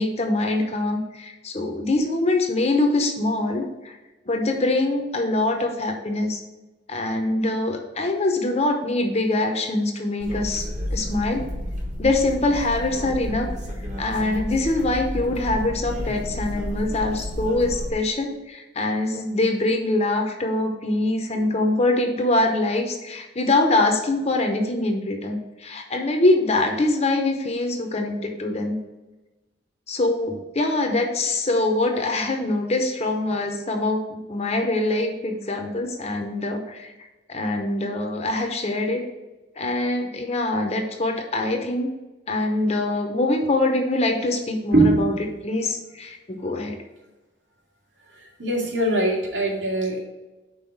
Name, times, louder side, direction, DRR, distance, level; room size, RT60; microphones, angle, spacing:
voice 1, 0.0-3.9 4.3-6.4 6.9-11.4 12.0-13.5 14.0-28.8 29.9-36.9 37.3-39.1 39.6-41.9 42.3-46.8, left 2 dB, 35° left, 4 dB, 0.7 m, -24 dB
sound 1, 10.2-17.9, equal, 40° right, 1.2 m, -31 dB
voice 2, 44.7-45.2 48.4-50.0, right 2 dB, 70° right, -4 dB, 2.3 m, -21 dB
5.5 x 4.0 x 5.9 m, 1.1 s
head